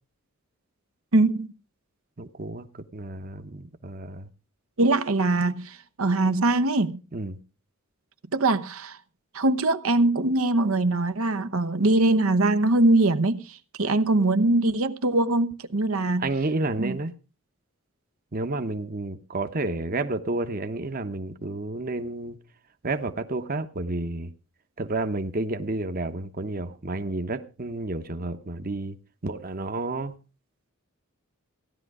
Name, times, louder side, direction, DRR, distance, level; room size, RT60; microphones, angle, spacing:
voice 1, 1.1-1.5 4.8-7.0 8.3-9.0 9.3-16.3 16.8-17.0, right 2 dB, 80° right, 1.0 m, -22 dB
voice 2, 2.2-2.7 2.9-4.3 7.1-7.4 16.2-17.1 18.3-22.4 22.8-24.3 24.8-29.0 29.2-30.2, right 2 dB, 45° right, 1.0 m, -30 dB
16.0 x 11.0 x 4.8 m
head